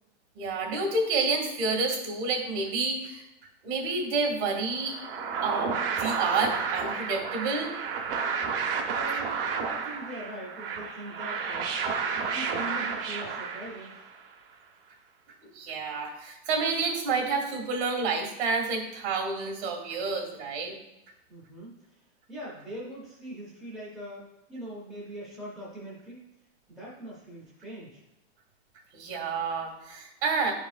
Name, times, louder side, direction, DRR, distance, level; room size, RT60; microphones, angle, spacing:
voice 1, 0.4-3.2 3.6-4.9 5.4-7.7 15.5-20.7 28.9-30.5, right 4 dB, 70° right, 1 dB, 2.2 m, -29 dB
sound 1, 4.8-14.2, right 5 dB, 55° right, 0.9 m, -31 dB
voice 2, 8.9-11.7 12.1-14.0 21.3-22.0 22.3-26.2 26.7-28.0, right 1 dB, ahead, -7 dB, 0.4 m, -42 dB
9.7 x 4.7 x 2.4 m, 0.90 s
supercardioid pair, 175°, 34 cm